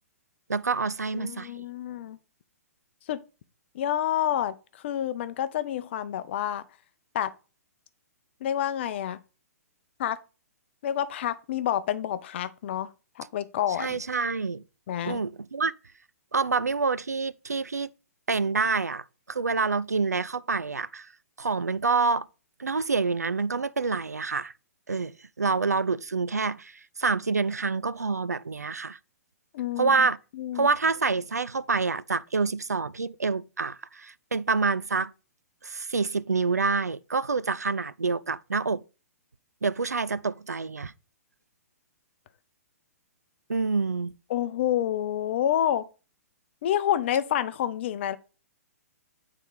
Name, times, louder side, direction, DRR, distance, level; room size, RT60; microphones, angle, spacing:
voice 1, 0.5-1.5 13.8-14.6 15.0-15.7 16.3-17.9 18.3-21.1 21.4-22.3 22.6-24.5 24.9-26.7 27.0-29.0 29.8-30.2 30.5-35.1 35.6-38.8 39.6-40.9 43.5-44.1, right 4 dB, 80° right, 0.4 m, -27 dB
voice 2, 1.1-2.2 3.1-3.2 3.7-4.5 4.8-6.6 7.1-7.3 8.4-9.2 10.0-10.2 10.8-12.9 13.2-14.0 14.9-15.2 29.5-30.1 30.3-30.7 44.3-45.8 46.6-48.2, left 11 dB, 45° left, 0.6 m, -28 dB
8.6 x 3.9 x 4.8 m
figure-of-eight pair, 115°, 9 cm